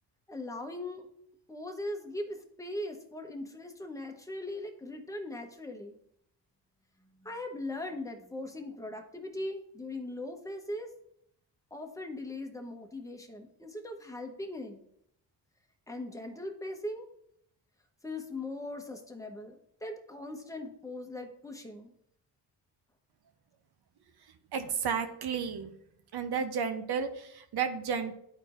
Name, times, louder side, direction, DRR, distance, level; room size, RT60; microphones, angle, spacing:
voice 1, 0.3-1.1 1.5-6.0 7.2-10.9 11.7-14.8 15.9-17.1 18.0-21.9, left 1 dB, 10° left, 3 dB, 1.0 m, -40 dB
voice 2, 24.5-25.7 26.1-28.1, right 6 dB, 65° right, 8 dB, 0.8 m, -32 dB
11.5 x 4.5 x 2.5 m, 0.74 s
cardioid pair, 85°, 42 cm